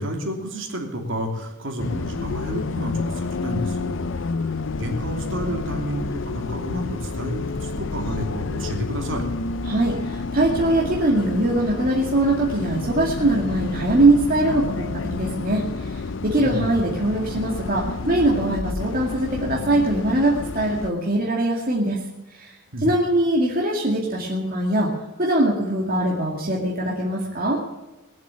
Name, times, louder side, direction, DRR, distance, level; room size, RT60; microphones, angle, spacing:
voice 1, 0.0-4.0 4.4-9.2 16.3-16.8 22.7-22.9, equal, 60° right, 2 dB, 2.9 m, -30 dB
Bus, 1.8-20.9, left 3 dB, 55° left, 0.6 m, -30 dB
voice 2, 9.6-22.0 22.3-22.5 22.8-24.9 25.2-27.6, right 1 dB, 40° right, -3 dB, 2.2 m, -22 dB
21.0 x 7.6 x 8.6 m, 1.0 s
head